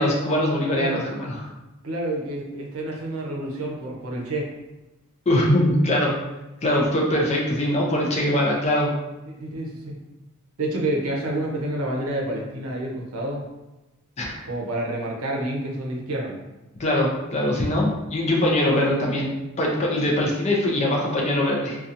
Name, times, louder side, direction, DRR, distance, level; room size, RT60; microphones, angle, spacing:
voice 1, 0.0-1.4 5.3-6.1 6.6-8.9 14.2-14.5 16.8-19.3 19.6-21.8, left 1 dB, 30° left, -2 dB, 0.4 m, -22 dB
voice 2, 0.7-1.0 1.8-4.5 9.3-10.0 10.6-13.5 14.4-16.4, right 1 dB, 85° right, -1 dB, 0.6 m, -28 dB
2.7 x 2.3 x 2.5 m, 1.0 s
head